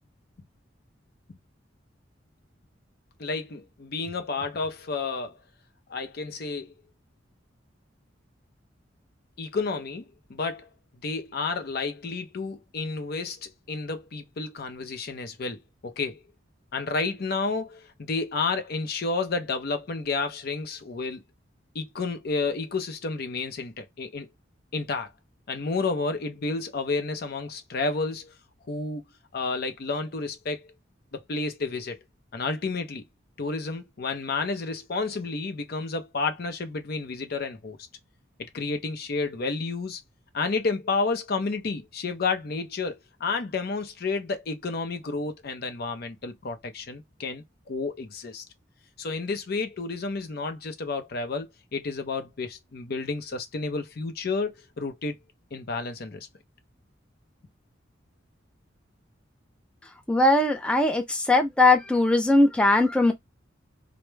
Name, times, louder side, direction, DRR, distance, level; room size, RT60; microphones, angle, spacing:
voice 1, 3.2-5.4 5.9-6.7 9.4-10.0 10.3-10.7 11.0-16.2 16.7-21.2 21.7-24.3 24.7-25.1 25.5-28.3 28.7-29.0 29.3-30.7 31.1-32.0 32.3-33.0 33.4-37.8 38.5-40.0 40.3-48.4 49.0-55.2 55.5-56.3, left 4 dB, 55° left, 0.5 m, -31 dB
voice 2, 60.1-63.1, left 2 dB, 5° left, 0.4 m, -20 dB
2.2 x 2.0 x 3.0 m
head